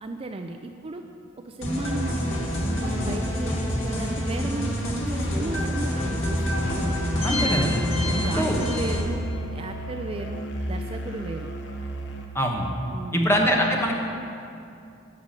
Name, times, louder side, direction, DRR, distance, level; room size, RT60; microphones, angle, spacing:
voice 1, 0.0-1.1 1.4-2.5 2.8-6.7 8.1-9.2 9.5-11.5 12.9-13.3, right 2 dB, 30° right, 5 dB, 0.4 m, -35 dB
sound 1, 1.6-9.0, equal, 85° left, 2.1 m, -26 dB
Musical instrument, 6.6-12.3, equal, 65° left, 1.1 m, -33 dB
voice 2, 7.2-7.9 8.2-8.6 12.3-12.7 13.1-14.0, equal, 15° left, 0 dB, 1.3 m, -23 dB
12.5 x 6.1 x 7.5 m, 2.6 s
head